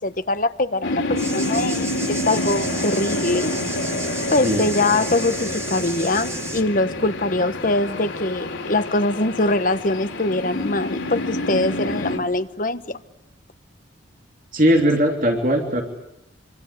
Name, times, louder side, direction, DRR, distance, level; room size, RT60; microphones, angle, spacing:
voice 1, 0.0-3.5 4.3-13.0, left 2 dB, 45° left, 1.2 m, -23 dB
sound 1, 0.8-12.2, left 2 dB, 90° left, 4.5 m, -28 dB
sound 2, 1.2-6.6, right 3 dB, 15° right, 1.5 m, -33 dB
voice 2, 4.4-4.7 14.5-15.8, equal, 45° right, 3.1 m, -19 dB
26.0 x 25.5 x 8.4 m
head